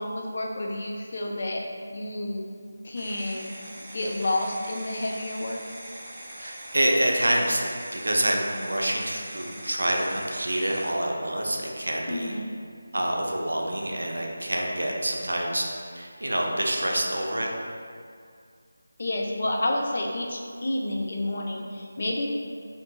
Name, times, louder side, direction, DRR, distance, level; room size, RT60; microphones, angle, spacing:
voice 1, 0.0-1.6 1.9-2.5 2.8-3.5 3.9-5.6 12.1-12.5 19.0-22.3, left 1 dB, 50° left, 0 dB, 0.3 m, -29 dB
sound 1, 3.0-10.9, right 1 dB, 25° right, 0.4 m, -42 dB
voice 2, 6.4-7.7 7.9-12.3 12.9-15.6 15.9-17.5, right 1 dB, 90° right, 0 dB, 0.4 m, -27 dB
2.7 x 2.4 x 2.2 m, 2.2 s
figure-of-eight pair, 170°, 0 cm